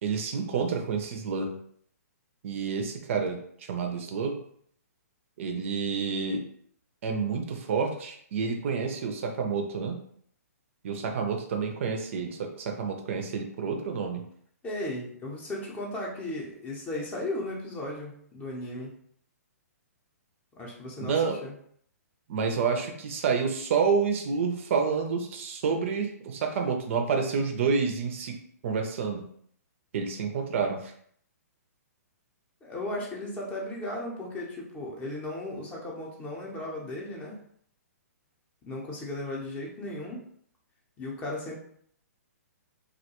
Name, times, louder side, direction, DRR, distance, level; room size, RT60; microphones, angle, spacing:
voice 1, 0.0-1.6 2.4-4.4 5.4-6.4 7.0-10.0 10.8-14.2 21.0-21.4 22.3-28.4 28.6-29.3 29.9-30.9, right 5 dB, 50° right, 4 dB, 0.4 m, -29 dB
voice 2, 14.6-18.9 20.6-21.5 32.6-37.4 38.6-40.2 41.0-41.6, left 1 dB, 15° left, -2 dB, 0.6 m, -36 dB
2.3 x 2.2 x 2.8 m, 0.63 s
hypercardioid pair, 140°, 9 cm